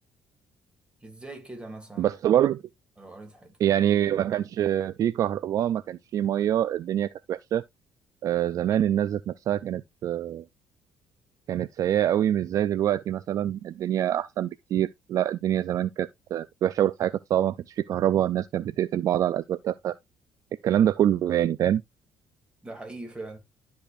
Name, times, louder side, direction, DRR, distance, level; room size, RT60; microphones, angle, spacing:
voice 1, 1.0-2.2 3.0-3.5 8.7-8.9 22.6-23.4, right 2 dB, 15° right, 2.4 m, -41 dB
voice 2, 2.0-2.6 3.6-7.6 8.2-10.4 11.5-20.0 20.6-21.8, right 11 dB, 50° right, 0.3 m, -25 dB
12.0 x 5.1 x 2.4 m
cardioid pair, 125°, 7 cm